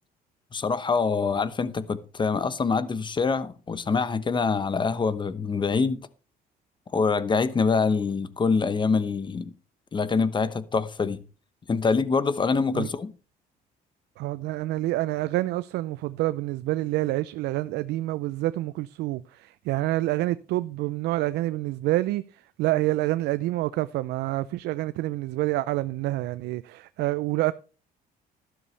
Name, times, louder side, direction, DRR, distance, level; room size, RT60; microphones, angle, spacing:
voice 1, 0.5-6.0 6.9-9.5 9.9-11.2 11.7-13.1, left 4 dB, 25° left, 1.0 m, -25 dB
voice 2, 14.2-22.2 22.6-27.5, right 17 dB, 80° right, 0.5 m, -27 dB
12.0 x 11.5 x 3.3 m
cardioid pair, 110°, 17 cm